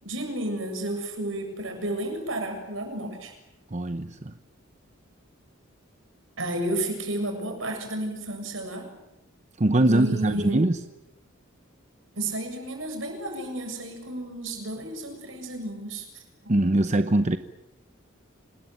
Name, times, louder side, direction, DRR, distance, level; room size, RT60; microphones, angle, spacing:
voice 1, 0.0-3.3 6.4-8.9 9.9-10.6 12.2-16.2, right 1 dB, 70° right, 5 dB, 7.2 m, -32 dB
voice 2, 3.7-4.3 9.6-10.8 16.5-17.4, right 1 dB, 35° right, 10 dB, 0.9 m, -22 dB
27.0 x 21.0 x 9.4 m, 0.91 s
head